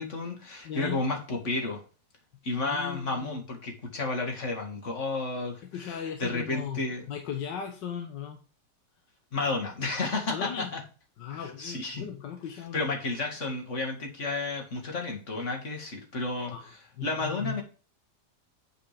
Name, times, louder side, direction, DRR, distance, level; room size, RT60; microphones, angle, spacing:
voice 1, 0.0-1.8 2.4-7.1 9.3-10.8 11.3-12.0 12.7-16.5 17.0-17.6, left 3 dB, 40° left, 2 dB, 2.2 m, -32 dB
voice 2, 0.6-1.0 2.5-3.4 5.6-6.8 7.1-8.4 10.3-10.8 11.2-12.9 16.5-17.6, left 8 dB, 85° left, 4 dB, 1.7 m, -37 dB
8.6 x 5.1 x 5.0 m, 0.36 s
omnidirectional pair, 1.9 m